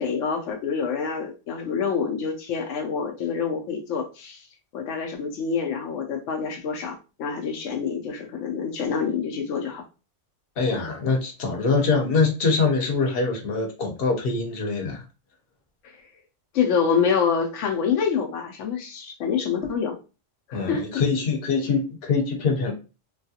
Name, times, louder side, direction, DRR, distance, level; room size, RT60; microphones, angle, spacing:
voice 1, 0.0-4.5 4.7-9.8 15.8-16.0 16.5-20.0 20.5-21.0, left 6 dB, 80° left, 0.9 m, -26 dB
voice 2, 10.6-15.0 20.5-22.7, left 4 dB, 55° left, 1.0 m, -24 dB
3.1 x 2.3 x 2.7 m
omnidirectional pair, 1.2 m